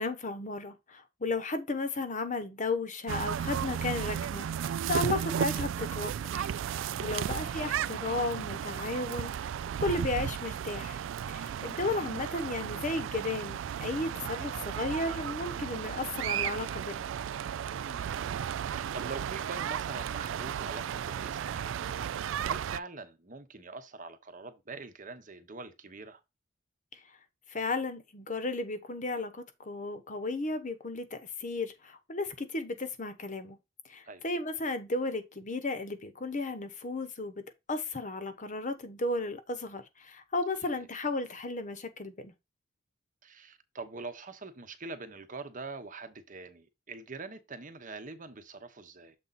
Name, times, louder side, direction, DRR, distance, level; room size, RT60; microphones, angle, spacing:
voice 1, 0.0-9.5 9.8-11.0 11.3-17.0 27.5-33.6 33.9-42.3, left 2 dB, 40° left, 0.9 m, -34 dB
sound 1, 3.1-22.8, right 8 dB, 70° right, 0.3 m, -34 dB
voice 2, 17.7-18.3 18.6-22.1 22.4-26.2 34.0-34.2 40.7-40.9 43.2-49.1, right 3 dB, 40° right, 1.0 m, -44 dB
7.2 x 3.9 x 4.1 m
head